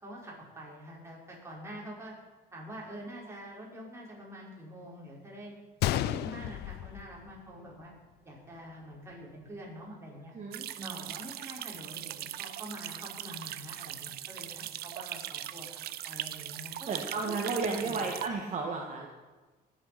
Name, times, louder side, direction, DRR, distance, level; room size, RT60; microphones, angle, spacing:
voice 1, 0.0-2.1 2.5-5.5 5.8-7.9 8.2-10.3 10.8-16.9 17.2-17.3 17.7-18.0, equal, 15° right, -4 dB, 5.4 m, -45 dB
Gunshot gunfire, 5.8-7.8 8.1-8.2 8.9-9.1, left 15 dB, 75° left, 0.4 m, -33 dB
voice 2, 10.3-11.0 16.9-19.1, right 4 dB, 45° right, 0 dB, 1.8 m, -34 dB
sound 1, 10.5-18.3, right 13 dB, 70° right, 0.7 m, -40 dB
19.0 x 8.2 x 6.0 m, 1.3 s
cardioid pair, 110°, 17 cm